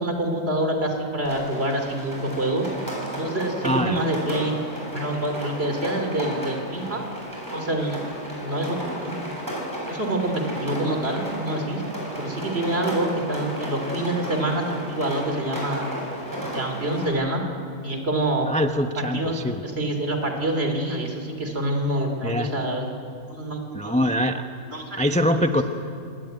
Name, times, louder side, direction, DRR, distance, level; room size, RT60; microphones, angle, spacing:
voice 1, 0.0-2.7 3.1-4.5 4.9-7.0 7.5-8.0 8.4-8.8 9.0-9.3 9.8-11.8 12.2-15.9 16.3-17.4 17.8-18.5 18.9-22.9 23.3-24.0 24.7-25.0, right 1 dB, 40° right, 4 dB, 3.3 m, -26 dB
Rain, 1.2-17.1, right 1 dB, 10° right, 7.3 m, -34 dB
voice 2, 3.6-4.0 18.5-19.6 22.2-22.5 23.7-24.5 25.0-25.6, equal, 5° left, 6 dB, 0.6 m, -23 dB
25.5 x 20.5 x 9.3 m, 2.5 s
omnidirectional pair, 1.6 m